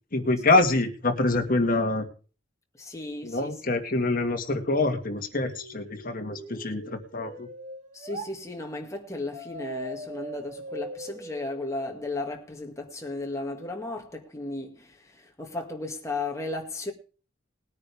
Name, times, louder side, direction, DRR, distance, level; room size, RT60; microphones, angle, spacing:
voice 1, 0.1-2.1 3.2-7.5, left 2 dB, 45° left, 2.0 m, -25 dB
voice 2, 2.8-3.5 7.9-16.9, left 2 dB, 15° left, 2.2 m, -35 dB
sound 1, 5.5-8.3 9.3-12.3, right 1 dB, 40° right, 2.3 m, -41 dB
20.0 x 9.5 x 3.5 m
head